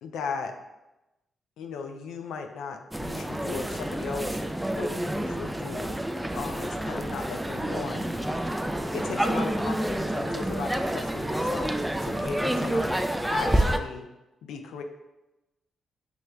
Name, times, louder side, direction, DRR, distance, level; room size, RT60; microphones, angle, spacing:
voice 1, 0.0-0.5 1.6-4.4 4.7-5.9 6.3-8.1 8.9-12.9 13.3-14.1 14.4-14.8, left 5 dB, 85° left, 5 dB, 0.4 m, -36 dB
sound 1, 2.9-13.8, right 1 dB, 5° right, 0.3 m, -28 dB
6.1 x 2.1 x 3.3 m, 0.99 s
cardioid pair, 65°, 0 cm